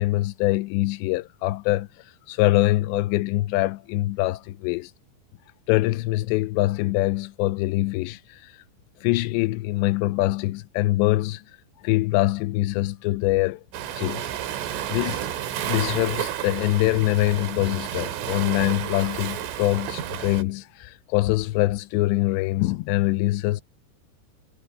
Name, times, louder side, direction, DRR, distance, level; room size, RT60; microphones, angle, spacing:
voice 1, 0.0-1.9 2.3-4.9 5.7-8.5 9.0-11.4 11.8-13.6 14.0-14.3 14.9-15.2 15.7-23.6, left 18 dB, 80° left, 2.6 m, -24 dB
Waves surf, 13.7-20.4, right 10 dB, 80° right, 4.5 m, -31 dB
omnidirectional pair, 5.6 m